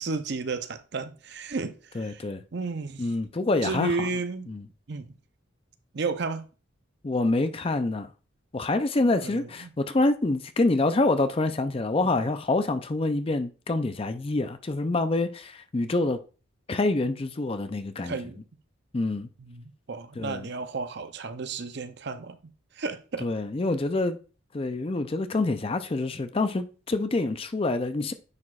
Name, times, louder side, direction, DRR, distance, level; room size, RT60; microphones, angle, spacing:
voice 1, 0.0-2.2 2.5-3.1 3.6-4.5 4.9-5.1 5.9-6.5 9.2-9.7 18.0-18.4 19.4-22.4 22.7-23.3, right 4 dB, 55° right, 0.6 m, -33 dB
voice 2, 1.9-2.4 3.0-4.1 4.5-4.7 7.0-8.1 8.5-16.2 16.7-18.2 18.9-19.3 20.2-20.5 23.2-24.2 24.5-28.1, left 2 dB, 25° left, 0.4 m, -26 dB
9.5 x 4.8 x 2.4 m
head